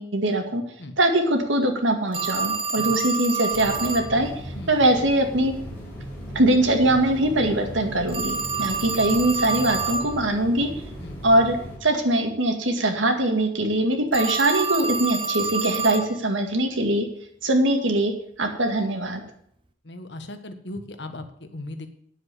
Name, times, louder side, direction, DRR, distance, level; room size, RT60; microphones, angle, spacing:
voice 1, 0.0-0.6 1.0-4.3 4.7-5.5 6.3-10.7 11.2-11.6 11.8-17.1 17.4-18.1 18.4-19.2, right 1 dB, 85° right, 5 dB, 2.1 m, -22 dB
Telephone, 2.1-4.1 8.1-10.1 14.1-16.1, right 4 dB, 25° right, 0.8 m, -28 dB
sound 1, 3.5-11.8, equal, 10° left, 4.4 m, -37 dB
voice 2, 19.8-21.9, left 2 dB, 65° left, 8 dB, 1.4 m, -38 dB
9.6 x 7.7 x 7.3 m, 0.68 s
head